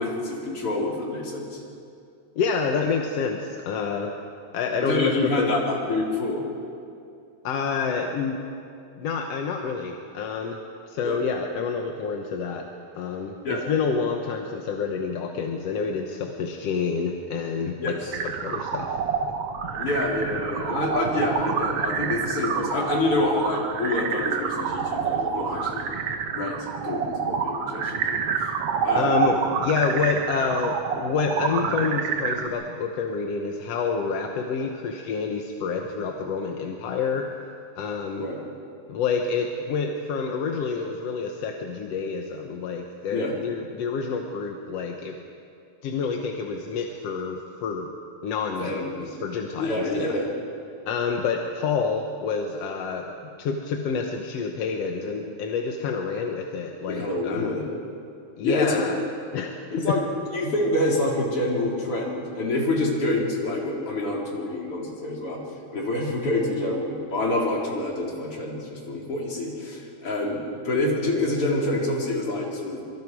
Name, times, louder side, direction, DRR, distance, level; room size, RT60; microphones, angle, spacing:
voice 1, 0.0-1.6 4.8-6.4 11.0-11.2 13.4-13.6 17.8-18.1 19.8-25.9 26.3-28.5 28.8-29.2 38.2-38.4 43.1-43.3 48.6-49.1 49.6-50.3 56.9-57.7 58.4-58.9 59.7-60.0 60.3-65.4 65.7-72.8, left 2 dB, 45° left, -3 dB, 4.6 m, -27 dB
voice 2, 2.4-4.1 4.5-5.5 7.4-8.4 9.0-10.6 10.9-12.6 12.9-18.0 18.2-18.9 29.0-37.3 37.8-38.3 38.9-45.2 45.8-47.9 48.2-50.2 50.9-57.6 58.4-59.0 59.3-59.5, left 5 dB, 60° left, 2 dB, 1.9 m, -28 dB
sound 1, 18.1-32.5, right 6 dB, 60° right, 1.7 m, -28 dB
26.0 x 24.0 x 4.8 m, 2.5 s
omnidirectional pair, 3.5 m